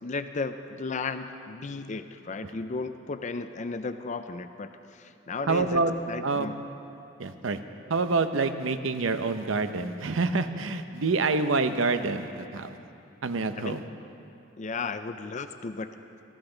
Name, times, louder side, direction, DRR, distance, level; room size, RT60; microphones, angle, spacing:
voice 1, 0.0-6.6 13.6-13.8 14.6-15.9, left 4 dB, 40° left, 10 dB, 0.5 m, -34 dB
voice 2, 5.5-5.9 6.2-6.5 7.2-7.6 7.9-12.7 13.2-13.8, right 3 dB, 85° right, 9 dB, 0.7 m, -27 dB
18.5 x 15.0 x 3.9 m, 2.7 s
head